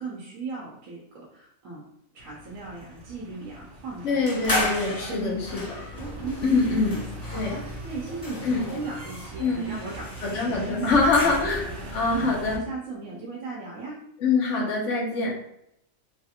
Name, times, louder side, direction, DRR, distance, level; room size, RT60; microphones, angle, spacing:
voice 1, 0.0-1.8 2.1-4.4 4.9-5.6 5.9-10.9 11.2-11.5 11.8-14.0 14.6-14.7, right 3 dB, 80° right, -4 dB, 1.1 m, -36 dB
sound 1, 2.2-12.6, right 1 dB, 60° right, 0.9 m, -41 dB
voice 2, 4.0-5.6 6.4-6.9 7.3-7.6 8.4-8.7 9.4-9.7 10.2-11.7 11.9-12.6 14.2-15.4, left 4 dB, 65° left, -1 dB, 1.1 m, -24 dB
sound 2, 4.3-11.8, left 1 dB, 25° left, 0.4 m, -34 dB
3.2 x 2.4 x 2.8 m, 0.76 s
omnidirectional pair, 1.4 m